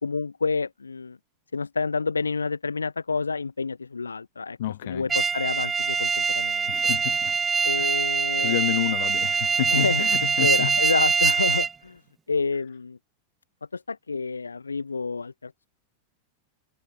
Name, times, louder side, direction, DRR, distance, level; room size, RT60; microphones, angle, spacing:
voice 1, 0.0-1.2 1.5-4.6 4.8-6.7 7.6-8.6 9.7-12.0 12.3-13.0 13.7-15.7, left 4 dB, 75° left, 0.8 m, -29 dB
voice 2, 4.6-5.1 6.7-7.4 7.8-8.0 8.4-10.8, left 14 dB, 55° left, 1.5 m, -30 dB
sound 1, 5.1-11.7, right 6 dB, 15° right, 0.6 m, -23 dB
figure-of-eight pair, 90°, 0 cm